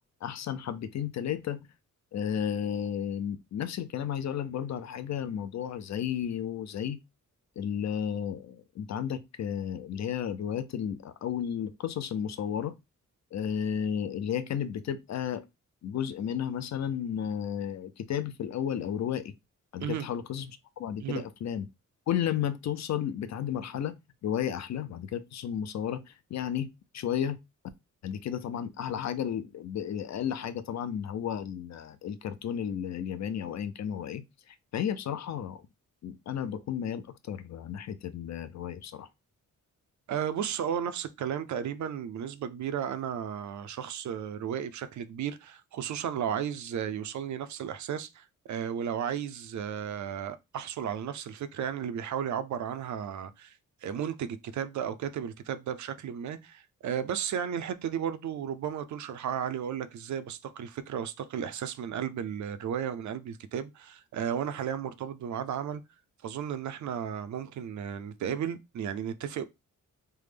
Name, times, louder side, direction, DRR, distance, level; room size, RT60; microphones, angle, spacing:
voice 1, 0.2-1.6 2.1-7.0 7.6-12.7 13.3-15.4 15.8-19.3 19.7-20.5 20.8-21.7 22.1-23.9 24.2-26.7 26.9-27.4 28.0-34.2 34.7-35.6 36.0-39.1, left 9 dB, 60° left, 0.5 m, -33 dB
voice 2, 40.1-53.6 53.8-65.8 66.2-69.4, right 8 dB, 65° right, 0.4 m, -34 dB
3.3 x 2.0 x 3.3 m
wide cardioid pair, 115°, 31 cm